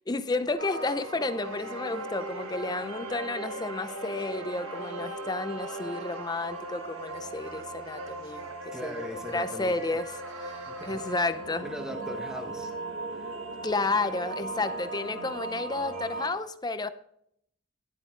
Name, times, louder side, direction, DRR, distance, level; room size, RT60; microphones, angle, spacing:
voice 1, 0.1-8.5 8.8-10.1 10.3-11.6 13.6-16.9, left 3 dB, 20° left, 0.5 m, -31 dB
sound 1, 0.6-16.3, right 2 dB, 80° right, 1.8 m, -38 dB
voice 2, 8.7-10.0 10.7-11.3 11.6-12.7 13.1-13.3, equal, 5° right, 1.2 m, -40 dB
11.5 x 8.9 x 3.8 m
head